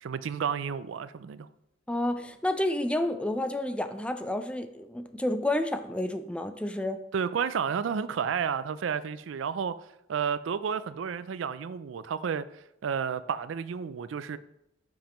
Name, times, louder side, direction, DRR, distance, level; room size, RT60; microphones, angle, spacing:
voice 1, 0.0-1.5 7.1-9.8 10.1-12.5 12.8-14.4, right 7 dB, 85° right, 15 dB, 0.4 m, -31 dB
voice 2, 1.9-7.0, left 1 dB, 5° left, 9 dB, 0.4 m, -30 dB
9.9 x 5.3 x 3.0 m, 0.81 s
head